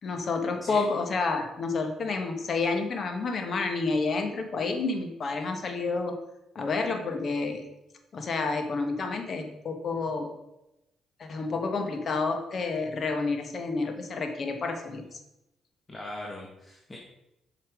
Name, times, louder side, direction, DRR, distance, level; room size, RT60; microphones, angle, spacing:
voice 1, 0.0-6.2 6.5-7.6 8.1-10.3 11.2-15.2, left 3 dB, 50° left, 5 dB, 1.5 m, -29 dB
voice 2, 15.9-17.0, left 1 dB, 20° left, -1 dB, 1.5 m, -39 dB
8.2 x 5.8 x 5.1 m, 0.90 s
cardioid pair, 90°, 0 cm